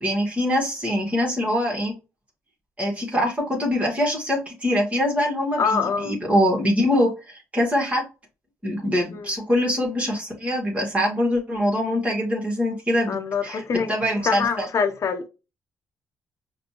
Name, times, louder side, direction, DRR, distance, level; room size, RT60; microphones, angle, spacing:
voice 1, 0.0-1.9 2.8-8.0 8.6-13.2 13.4-13.6 13.9-14.7, left 1 dB, 25° right, 2.0 m, -23 dB
voice 2, 5.6-6.2 9.1-9.3 13.1-13.9 14.2-15.3, left 6 dB, 55° left, 0.7 m, -24 dB
5.0 x 2.7 x 2.9 m
supercardioid pair, 65°, 6 cm